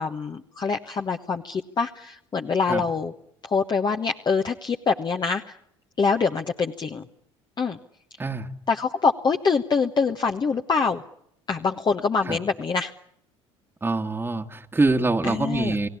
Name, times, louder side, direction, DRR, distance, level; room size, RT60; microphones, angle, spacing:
voice 1, 0.0-3.1 3.4-5.6 6.0-7.0 7.6-7.8 8.7-11.0 11.5-12.9 15.3-15.7, left 5 dB, 30° left, 4 dB, 1.2 m, -25 dB
voice 2, 8.2-8.6 12.2-12.4 13.8-15.9, right 3 dB, 15° right, 2 dB, 1.7 m, -25 dB
30.0 x 17.5 x 9.8 m, 0.74 s
hypercardioid pair, 75°, 15 cm